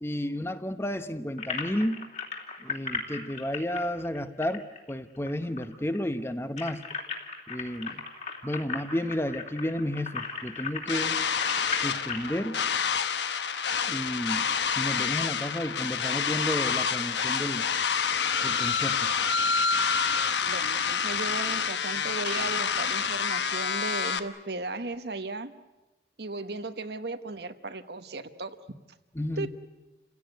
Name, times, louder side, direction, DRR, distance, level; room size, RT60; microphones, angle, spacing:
voice 1, 0.0-2.0 2.6-6.8 7.5-8.0 8.4-11.2 11.8-12.6 13.9-14.5 14.8-17.6 18.4-19.1 29.1-29.5, left 1 dB, 15° left, 10 dB, 0.9 m, -32 dB
sound 1, 1.4-5.3 5.6-5.7 6.0-12.3, left 4 dB, 40° left, 3.1 m, -37 dB
sound 2, 10.9-24.2, left 6 dB, 80° left, 1.1 m, -28 dB
voice 2, 20.4-25.5 26.2-28.6 29.4-29.5, right 3 dB, 70° right, 10 dB, 1.2 m, -36 dB
29.0 x 16.5 x 9.5 m, 1.1 s
head